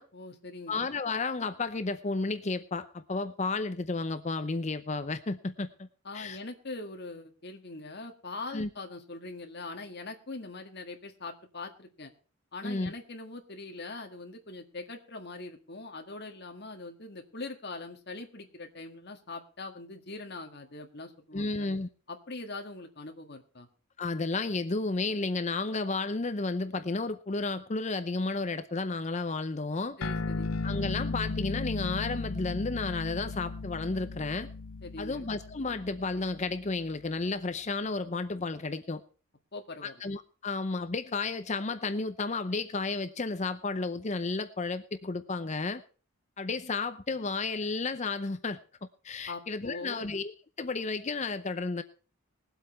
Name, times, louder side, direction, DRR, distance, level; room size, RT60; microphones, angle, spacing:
voice 1, 0.1-0.8 6.0-12.1 12.5-21.7 22.1-23.7 30.0-30.5 34.8-35.3 39.5-40.0 49.3-50.1, left 3 dB, 45° left, 3 dB, 1.7 m, -42 dB
voice 2, 0.7-5.9 6.1-6.4 8.5-8.7 12.6-12.9 21.3-21.9 24.0-30.0 30.6-34.5 35.0-39.0 39.8-45.8 46.4-48.6 49.0-50.3 50.6-51.8, left 3 dB, 30° left, 11 dB, 0.6 m, -32 dB
sound 1, 30.0-36.8, left 3 dB, 70° left, 0.7 m, -36 dB
20.0 x 8.0 x 4.3 m, 0.38 s
head